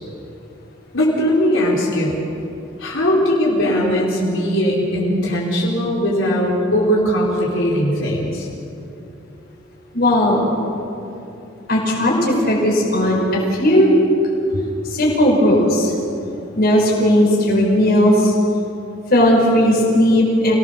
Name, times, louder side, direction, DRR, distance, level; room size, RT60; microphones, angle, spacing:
voice 1, 0.9-2.2 2.8-8.5, equal, 75° left, -5 dB, 5.1 m, -19 dB
voice 2, 9.9-10.4 11.7-13.9 14.8-15.9 16.5-18.3 19.1-20.5, equal, 50° left, -2 dB, 5.3 m, -16 dB
29.0 x 18.5 x 7.1 m, 2.8 s
head